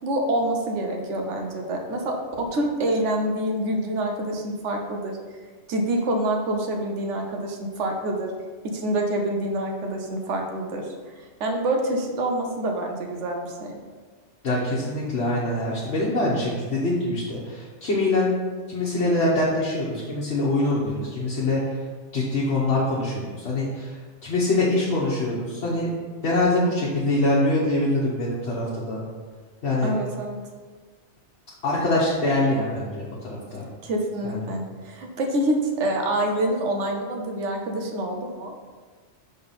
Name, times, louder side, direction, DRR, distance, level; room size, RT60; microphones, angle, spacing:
voice 1, 0.0-5.2 5.7-8.3 8.7-10.9 11.4-13.8 29.8-30.4 33.8-38.5, right 1 dB, 90° right, 2 dB, 1.2 m, -26 dB
voice 2, 14.4-18.3 18.7-21.6 22.1-23.9 24.2-25.9 26.2-29.0 29.6-29.9 31.6-33.7 34.2-34.4, left 2 dB, 65° left, -5 dB, 1.3 m, -24 dB
5.7 x 4.0 x 5.5 m, 1.5 s
omnidirectional pair, 1.2 m